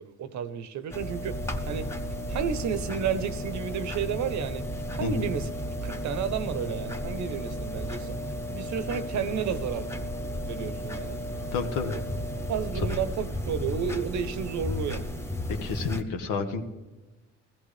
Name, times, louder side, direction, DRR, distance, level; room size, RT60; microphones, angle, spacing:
voice 1, 0.0-1.4 1.7-1.9 2.3-4.6 4.9-5.5 5.8-8.2 8.5-9.9 10.4-11.2 11.8-12.0 12.5-15.1, right 7 dB, 70° right, 0.8 m, -32 dB
sound 1, 0.9-16.0, equal, 10° left, 1.0 m, -34 dB
voice 2, 11.5-11.9 15.5-16.6, left 4 dB, 85° left, 1.2 m, -30 dB
15.5 x 15.0 x 3.3 m
cardioid pair, 90°, 30 cm